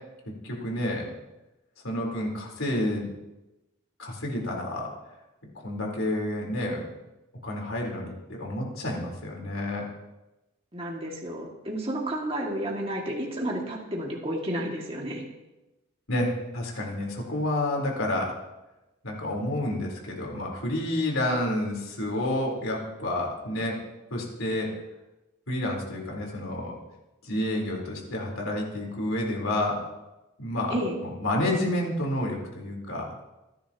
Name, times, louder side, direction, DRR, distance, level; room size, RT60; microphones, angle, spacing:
voice 1, 0.4-1.1 1.8-3.1 4.0-4.9 5.6-6.8 7.4-9.9 16.1-18.3 19.0-23.8 24.1-24.7 25.5-26.7 27.2-29.8 30.4-30.8 31.2-33.1, left 1 dB, 80° left, -1 dB, 4.1 m, -29 dB
voice 2, 10.7-15.2 30.7-31.0, right 1 dB, 25° right, -2 dB, 2.2 m, -31 dB
27.5 x 10.5 x 3.0 m, 1.0 s
head